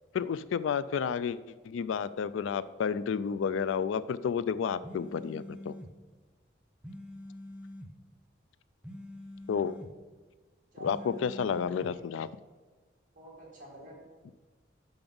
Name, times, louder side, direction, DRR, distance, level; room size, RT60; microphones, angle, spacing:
voice 1, 0.1-1.4 1.6-5.7 9.5-9.7 10.8-12.3, left 6 dB, 80° left, 15 dB, 0.3 m, -31 dB
sound 1, 4.8-5.9 6.8-7.9 8.8-9.9 10.8-11.9, left 1 dB, 5° right, 0.4 m, -45 dB
voice 2, 10.7-11.8 13.1-14.3, right 1 dB, 45° right, -2 dB, 2.2 m, -50 dB
5.8 x 5.3 x 5.3 m, 1.3 s
head